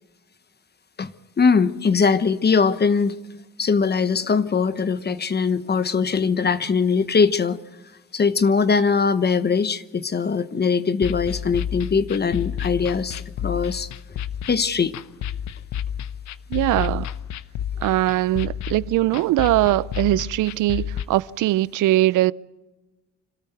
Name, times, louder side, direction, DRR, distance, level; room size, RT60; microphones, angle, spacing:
voice 1, 1.0-3.2 3.6-7.6 8.1-13.9 14.5-14.9, left 5 dB, 35° left, 1.0 m, -21 dB
sound 1, 11.0-21.0, left 9 dB, 70° left, 0.8 m, -31 dB
voice 2, 16.5-17.1 17.8-22.3, right 16 dB, 85° right, 0.6 m, -21 dB
26.0 x 13.0 x 8.0 m
cardioid pair, 90°, 30 cm